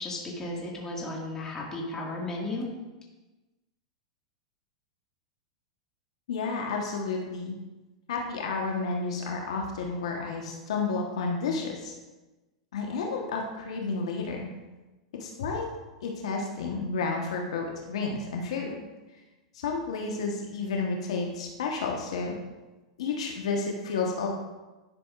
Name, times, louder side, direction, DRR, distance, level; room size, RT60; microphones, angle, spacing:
voice 1, 0.0-2.7, left 2 dB, 15° left, -3 dB, 1.8 m, -34 dB
voice 2, 6.3-7.5 8.1-11.9 12.7-14.5 15.2-15.6 16.0-18.7 19.6-22.4 23.0-24.3, left 4 dB, 75° left, 1 dB, 1.1 m, -31 dB
11.0 x 6.0 x 2.4 m, 1.1 s
hypercardioid pair, 110°, 3 cm